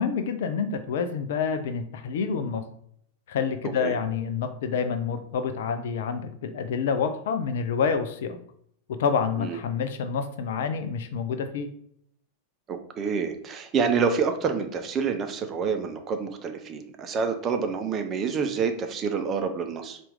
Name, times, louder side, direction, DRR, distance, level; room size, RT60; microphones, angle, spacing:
voice 1, 0.0-2.6 3.3-8.4 8.9-11.7, left 6 dB, 55° left, 8 dB, 0.4 m, -28 dB
voice 2, 12.7-20.0, right 5 dB, 30° right, 6 dB, 0.6 m, -27 dB
4.4 x 2.5 x 3.6 m, 0.67 s
figure-of-eight pair, 90°, 0 cm